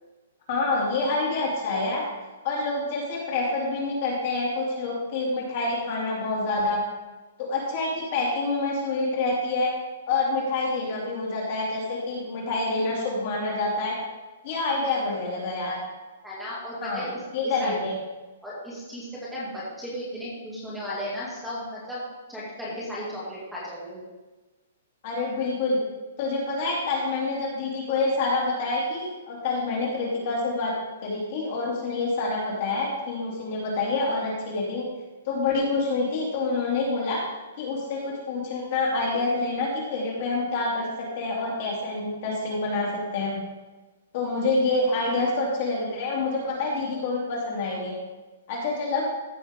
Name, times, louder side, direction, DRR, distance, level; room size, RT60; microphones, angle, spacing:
voice 1, 0.5-2.0 2.4-6.8 7.4-9.7 10.1-13.9 14.4-15.8 16.8-17.1 17.3-17.9 25.0-25.8 26.2-30.7 31.0-34.8 35.3-37.2 37.6-40.9 41.2-43.4 44.1-47.9 48.5-49.0, left 3 dB, 35° left, -3 dB, 2.6 m, -27 dB
voice 2, 16.2-17.2 17.6-17.8 18.4-22.0 22.3-24.0, equal, 5° right, -8 dB, 2.4 m, -35 dB
15.0 x 6.3 x 3.7 m, 1.2 s
hypercardioid pair, 175°, 0 cm